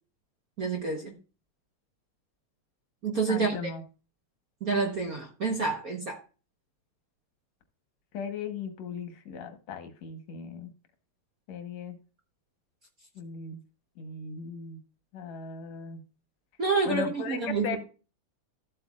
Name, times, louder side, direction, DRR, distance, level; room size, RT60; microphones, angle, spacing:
voice 1, 0.6-1.1 3.0-3.6 4.6-6.2 16.6-17.8, right 4 dB, 60° right, 2 dB, 0.9 m, -28 dB
voice 2, 3.3-3.8 8.1-10.7 11.5-12.0 13.2-13.6 14.0-14.8 15.1-16.0 16.9-17.8, left 5 dB, 70° left, 7 dB, 2.4 m, -37 dB
13.5 x 7.9 x 2.4 m, 0.34 s
omnidirectional pair, 3.3 m